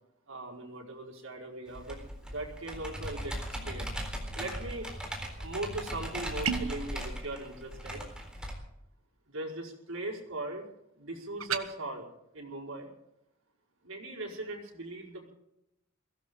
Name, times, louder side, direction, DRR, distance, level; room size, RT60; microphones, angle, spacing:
voice 1, 0.3-3.4 3.6-3.9 4.3-4.9 5.4-8.0 9.3-10.7 11.0-12.1 12.3-12.9 13.8-15.3, right 2 dB, 70° right, -1 dB, 5.2 m, -39 dB
Computer keyboard, 1.7-8.5, equal, 5° right, 4.0 m, -38 dB
sound 1, 6.4-6.8 11.4-11.7, right 6 dB, 90° right, 1.3 m, -31 dB
22.0 x 16.5 x 3.8 m, 0.82 s
head